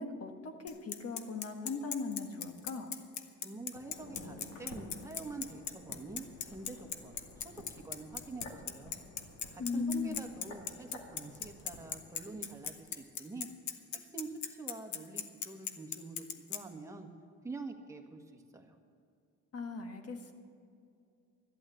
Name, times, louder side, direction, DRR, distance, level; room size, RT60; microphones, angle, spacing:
voice 1, 0.0-2.9 9.6-10.2 19.5-20.3, left 4 dB, 50° left, 5 dB, 1.6 m, -38 dB
Bicycle, 0.7-16.6, left 8 dB, 70° left, 1.0 m, -38 dB
voice 2, 3.4-9.0 9.5-13.5 13.9-17.1 17.4-18.8, right 3 dB, 10° right, 2 dB, 1.5 m, -46 dB
sound 1, 3.7-12.8 13.0-13.1, left 2 dB, 85° left, 2.1 m, -52 dB
13.0 x 8.7 x 7.8 m, 2.5 s
cardioid pair, 90°, 30 cm